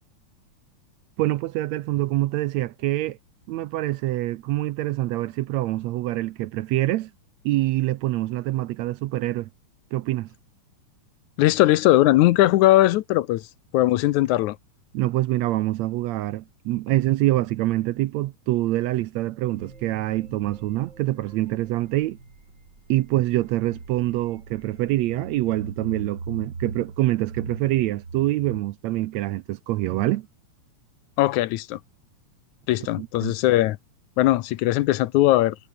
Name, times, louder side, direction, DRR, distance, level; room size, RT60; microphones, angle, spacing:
voice 1, 1.2-3.2 3.5-7.1 7.5-9.5 9.9-10.3 14.9-22.2 22.9-30.3 33.0-33.3, right 16 dB, 75° right, 1.7 m, -25 dB
voice 2, 11.4-13.5 13.7-14.6 31.2-31.8 32.7-33.8 34.2-35.6, left 16 dB, 75° left, 2.1 m, -19 dB
sound 1, 19.5-28.6, right 4 dB, 35° right, 4.3 m, -40 dB
omnidirectional pair, 3.5 m